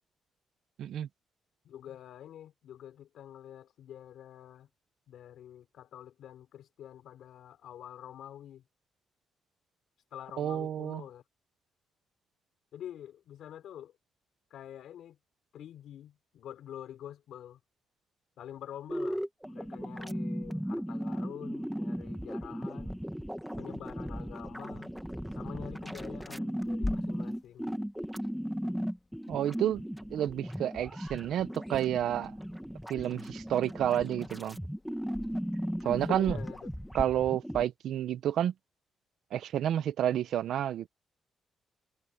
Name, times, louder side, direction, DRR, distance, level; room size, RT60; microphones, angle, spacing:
voice 1, 1.6-4.7 5.1-8.6 10.1-11.2 12.7-13.9 14.5-15.2 15.5-17.6 18.4-23.0 23.6-25.0 25.3-27.7 35.8-36.7, left 10 dB, 75° left, 4.9 m, -47 dB
voice 2, 10.4-11.0 29.3-29.8 30.1-32.3 32.9-34.6 35.8-36.4 36.9-38.5 39.3-40.9, right 11 dB, 75° right, 0.8 m, -30 dB
sound 1, 18.9-37.7, equal, ahead, 1.6 m, -37 dB
Clock, 26.6-37.0, left 2 dB, 15° left, 2.9 m, -45 dB
cardioid pair, 150°, 0 cm